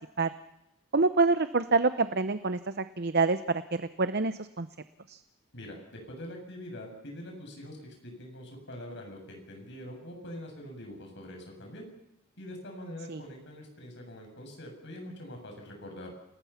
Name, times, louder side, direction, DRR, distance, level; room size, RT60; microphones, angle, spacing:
voice 1, 0.9-4.7 5.1-5.2 13.1-13.2, right 3 dB, 50° right, 12 dB, 0.8 m, -27 dB
voice 2, 5.5-11.9 12.4-16.1, left 1 dB, 60° left, 2 dB, 8.0 m, -44 dB
29.0 x 20.0 x 5.8 m, 0.84 s
head